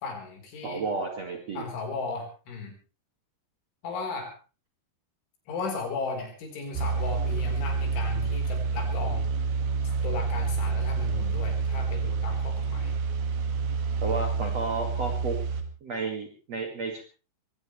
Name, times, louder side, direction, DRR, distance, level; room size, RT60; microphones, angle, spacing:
voice 1, 0.0-0.8 1.5-2.8 3.8-4.4 5.5-9.3 10.0-12.9, left 4 dB, 70° left, 3 dB, 6.7 m, -35 dB
voice 2, 0.6-1.7 14.0-15.4 15.8-17.0, right 3 dB, 45° right, 2 dB, 2.4 m, -32 dB
sound 1, 6.8-15.6, right 5 dB, 85° right, 4.7 m, -28 dB
23.0 x 17.0 x 3.3 m, 0.33 s
omnidirectional pair, 5.8 m